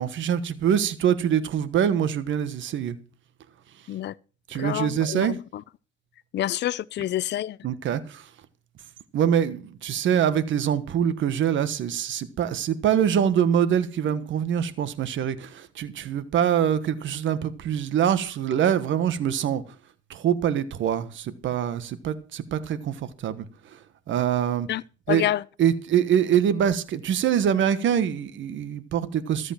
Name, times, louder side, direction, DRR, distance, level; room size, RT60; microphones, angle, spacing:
voice 1, 0.0-3.0 4.5-5.4 7.6-8.3 9.1-19.6 20.1-23.8 24.1-24.7 25.1-25.3 25.6-29.5, right 9 dB, 70° right, 1.4 m, -24 dB
voice 2, 4.5-5.4 6.3-7.6 24.7-24.8 25.1-25.4, left 13 dB, 60° left, 0.5 m, -27 dB
14.0 x 8.2 x 5.9 m
cardioid pair, 90°, 20 cm